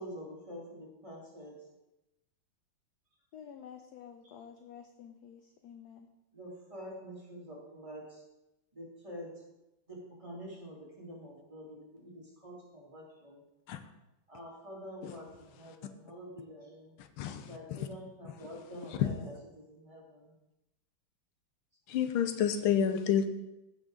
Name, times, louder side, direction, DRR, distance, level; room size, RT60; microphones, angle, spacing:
voice 1, 0.0-1.5 6.3-8.2 8.7-9.3 9.9-13.4 14.3-16.9 17.4-20.3, equal, 15° right, -4 dB, 2.8 m, -47 dB
voice 2, 3.3-6.1, left 8 dB, 70° left, 6 dB, 0.9 m, -50 dB
voice 3, 17.0-17.9 18.4-18.5 18.9-19.1 21.9-23.3, left 8 dB, 85° left, 9 dB, 1.6 m, -30 dB
15.0 x 6.2 x 4.0 m, 0.95 s
omnidirectional pair, 2.3 m